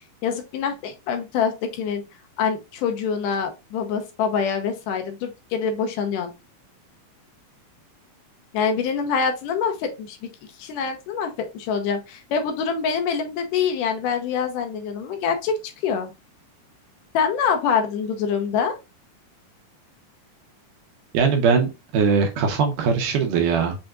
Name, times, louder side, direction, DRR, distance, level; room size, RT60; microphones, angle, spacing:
voice 1, 0.2-2.0 2.4-6.3 8.5-10.2 10.6-15.5 15.8-16.1 17.1-18.8, left 6 dB, 80° left, 5 dB, 2.2 m, -25 dB
voice 2, 21.1-23.8, right 5 dB, 75° right, 3 dB, 2.4 m, -21 dB
6.4 x 3.4 x 2.4 m, 0.25 s
omnidirectional pair, 4.0 m